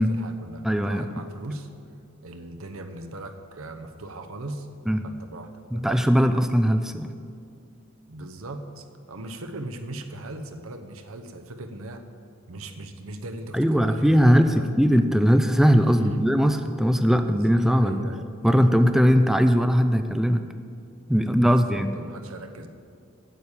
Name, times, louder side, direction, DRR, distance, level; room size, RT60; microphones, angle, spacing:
voice 1, 0.0-1.7 2.2-4.7 5.0-5.9 8.1-12.0 12.5-14.8 15.9-16.2 17.2-17.5 17.8-18.3 21.4-22.7, right 2 dB, 85° right, 6 dB, 0.9 m, -39 dB
voice 2, 0.6-1.1 4.9-5.0 5.7-7.1 13.5-18.1 18.4-20.4 21.1-21.9, equal, ahead, 8 dB, 0.3 m, -20 dB
9.3 x 7.2 x 8.2 m, 2.3 s
head